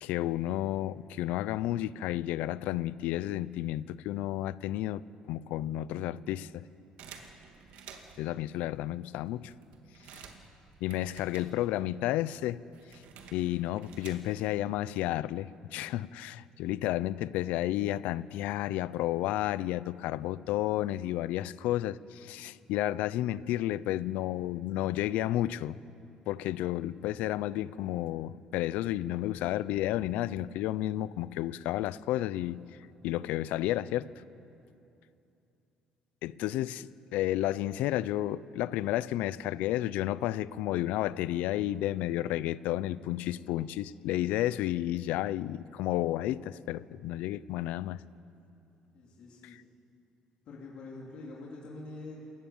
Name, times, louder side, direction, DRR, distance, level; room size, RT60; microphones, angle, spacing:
voice 1, 0.0-5.0 5.3-6.6 8.2-9.5 10.1-10.2 10.8-12.6 13.3-25.8 26.3-32.6 33.0-34.1 36.2-48.0, left 14 dB, 85° left, 0.5 m, -32 dB
sound 1, 7.0-8.3 9.0-9.1 9.3-12.0 12.2-14.6, right 6 dB, 70° right, 2.3 m, -51 dB
voice 2, 48.9-49.6 50.4-52.2, left 3 dB, 45° left, 3.2 m, -45 dB
28.0 x 17.0 x 7.3 m
cardioid pair, 170°, 2 cm